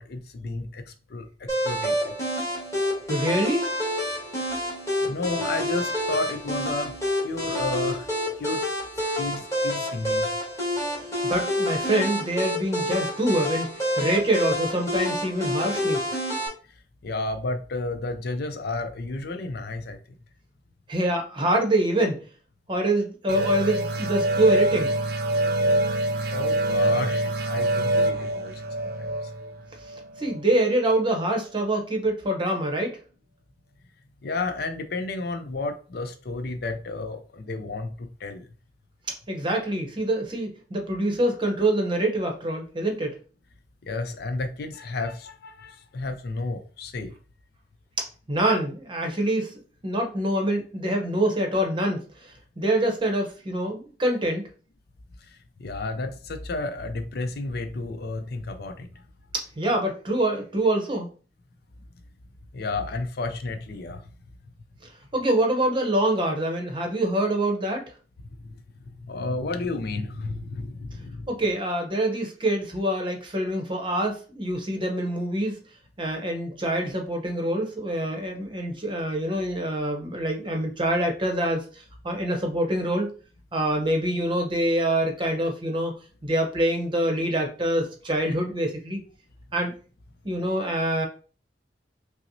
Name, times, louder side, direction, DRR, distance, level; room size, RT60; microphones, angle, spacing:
voice 1, 0.0-2.2 5.0-6.9 7.2-8.1 8.4-8.6 9.2-10.3 17.0-20.0 26.3-29.1 34.2-38.5 43.9-47.1 55.3-58.9 62.5-64.0 68.4-68.6 69.0-71.3, left 3 dB, 60° left, 0.5 m, -32 dB
sound 1, 1.5-16.5, equal, 20° left, 1.5 m, -28 dB
voice 2, 3.1-3.7 10.9-16.0 20.9-22.2 22.7-24.9 30.2-33.0 39.3-43.2 48.3-49.5 49.8-54.5 59.3-61.1 65.1-67.8 71.3-75.6 76.0-81.6 82.0-83.1 83.5-85.9 86.2-89.0 89.5-89.7 90.2-91.1, right 1 dB, 30° right, 0.8 m, -25 dB
sound 2, 23.3-30.6, right 1 dB, 60° right, 0.5 m, -25 dB
5.6 x 2.0 x 2.6 m
head